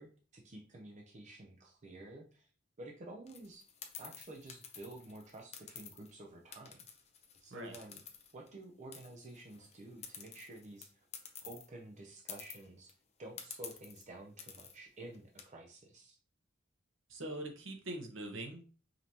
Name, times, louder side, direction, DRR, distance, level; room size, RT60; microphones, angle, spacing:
voice 1, 0.0-2.5 2.8-3.7 4.0-6.9 7.4-8.0 8.3-11.1 11.4-12.9 13.2-16.2, right 2 dB, 40° right, 1 dB, 0.6 m, -51 dB
sound 1, 3.3-6.1 6.5-8.6 8.9-11.7 12.0-12.1 12.3-12.9 13.4-14.0 14.4-14.8 15.1-15.4, left 7 dB, 35° left, 0.6 m, -50 dB
voice 2, 17.1-18.6, right 1 dB, 70° right, 3 dB, 1.0 m, -43 dB
5.2 x 2.8 x 2.9 m, 0.38 s
head